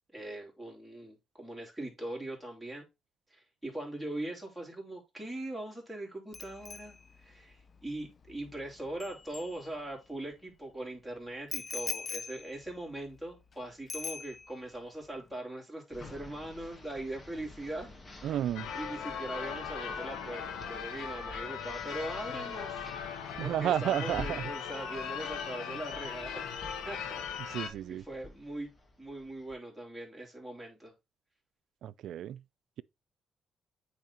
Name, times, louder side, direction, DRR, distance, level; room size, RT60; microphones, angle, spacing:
voice 1, 0.1-2.9 3.3-17.9 18.2-18.4 18.7-22.8 23.4-26.4 26.8-28.7 29.0-30.9, right 1 dB, 5° right, 3.2 m, -41 dB
Bicycle bell, 6.3-10.2 11.5-13.5 13.9-14.8 15.0-15.3, left 4 dB, 40° left, 0.6 m, -43 dB
sound 1, 15.9-29.5, left 2 dB, 25° left, 1.5 m, -50 dB
voice 2, 18.2-18.7 23.4-24.4 27.4-28.0 31.8-32.4, right 11 dB, 75° right, 0.3 m, -32 dB
Church bell / Car / Alarm, 18.5-27.7, left 7 dB, 90° left, 1.1 m, -39 dB
8.6 x 3.3 x 4.3 m
cardioid pair, 90°, 0 cm